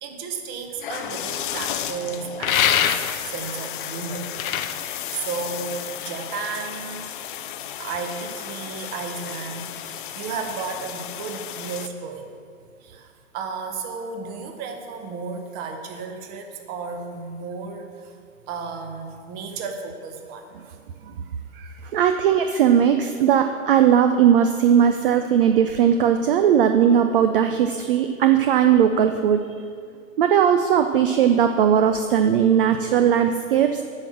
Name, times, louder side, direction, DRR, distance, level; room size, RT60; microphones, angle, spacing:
voice 1, 0.0-3.0 3.2-4.3 4.7-7.1 7.8-12.3 12.8-18.2 18.5-20.8 21.8-21.9 22.4-22.5, right 5 dB, 25° right, 5 dB, 0.9 m, -33 dB
sound 1, 0.8-11.9, left 10 dB, 40° left, 0.5 m, -33 dB
sound 2, 2.4-3.4 4.2-5.9, left 9 dB, 85° left, 0.7 m, -23 dB
voice 2, 21.5-29.5 30.2-33.8, right 8 dB, 45° right, 7 dB, 0.5 m, -18 dB
8.7 x 6.1 x 7.5 m, 2.2 s
hypercardioid pair, 150°, 40 cm